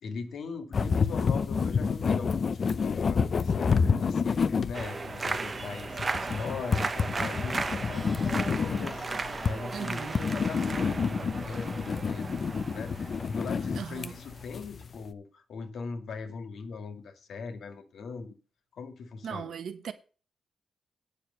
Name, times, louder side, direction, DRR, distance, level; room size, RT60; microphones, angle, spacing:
voice 1, 0.0-18.3 18.7-19.5, left 5 dB, 65° left, 1.9 m, -40 dB
sound 1, 0.7-15.0, left 5 dB, 35° left, 0.6 m, -29 dB
sound 2, 4.7-14.4, right 4 dB, 25° right, 0.8 m, -36 dB
Squeak, 7.4-13.2, equal, 5° left, 1.9 m, -50 dB
voice 2, 9.7-10.1 13.8-14.1 19.2-19.9, right 7 dB, 60° right, 1.3 m, -37 dB
9.6 x 6.6 x 6.7 m
wide cardioid pair, 170°, 0 cm